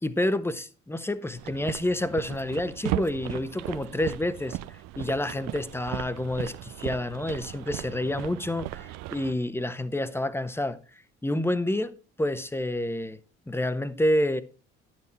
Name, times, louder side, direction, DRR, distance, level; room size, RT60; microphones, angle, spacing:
voice 1, 0.0-4.6 5.0-10.8 11.2-13.2 13.5-14.4, left 1 dB, 5° left, 1.2 m, -28 dB
sound 1, 1.4-9.3, right 15 dB, 50° right, 0.7 m, -37 dB
12.0 x 9.0 x 4.3 m
figure-of-eight pair, 50°, 34 cm